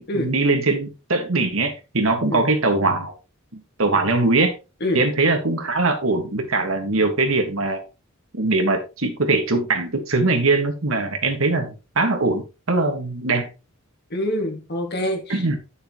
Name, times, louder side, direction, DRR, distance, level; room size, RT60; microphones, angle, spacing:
voice 1, 0.0-3.2 3.5-4.5 4.9-7.8 8.3-13.5 15.3-15.6, right 3 dB, 70° right, 1.8 m, -21 dB
voice 2, 14.1-15.6, left 1 dB, 50° left, 2.2 m, -26 dB
9.8 x 6.6 x 3.1 m
head